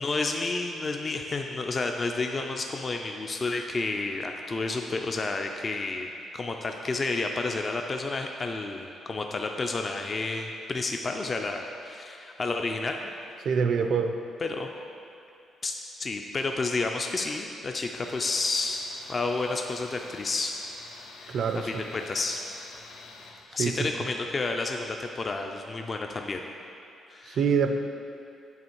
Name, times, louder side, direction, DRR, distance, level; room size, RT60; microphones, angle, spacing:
voice 1, 0.0-13.0 14.4-14.8 15.6-20.5 21.2-21.4 21.7-22.4 23.5-26.4 27.1-27.4, left 3 dB, 35° left, 3 dB, 0.4 m, -30 dB
voice 2, 13.4-14.1 21.3-21.7 23.6-23.8 27.3-27.8, right 6 dB, 65° right, 6 dB, 0.4 m, -25 dB
Tools, 18.0-23.4, left 3 dB, 90° left, 0.7 m, -48 dB
7.9 x 3.1 x 4.4 m, 2.7 s
cardioid pair, 90°, 0 cm